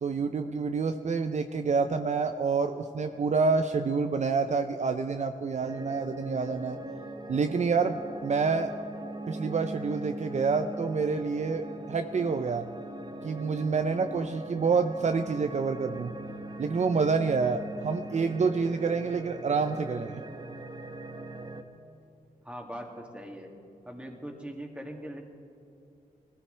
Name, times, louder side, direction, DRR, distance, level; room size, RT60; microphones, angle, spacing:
voice 1, 0.0-6.8 7.3-8.7 9.3-12.7 13.2-16.1 16.6-20.2, right 4 dB, 50° right, 7 dB, 0.6 m, -28 dB
sound 1, 5.6-21.6, right 1 dB, 30° right, 1.0 m, -40 dB
voice 2, 22.4-23.5 23.8-25.2, equal, 5° right, 1 dB, 2.3 m, -41 dB
20.0 x 14.0 x 3.4 m, 2.7 s
cardioid pair, 55°, 15 cm